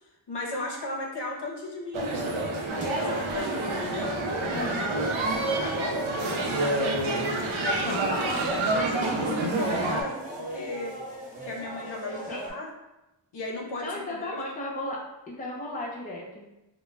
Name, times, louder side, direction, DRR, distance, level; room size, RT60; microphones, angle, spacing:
voice 1, 0.3-4.1 5.6-6.0 7.6-8.2 8.8-11.0 11.4-12.7 13.3-14.4, left 2 dB, 60° left, -1 dB, 0.6 m, -36 dB
sound 1, 1.9-10.0, right 2 dB, 80° right, 0.5 m, -28 dB
sound 2, 2.7-12.5, right 1 dB, 15° right, 0.8 m, -38 dB
voice 2, 4.5-5.0 7.9-9.0 12.3-12.6 13.8-15.0 15.3-16.5, left 1 dB, 20° left, -2 dB, 0.5 m, -35 dB
2.2 x 2.1 x 3.1 m, 0.95 s
cardioid pair, 50°, 46 cm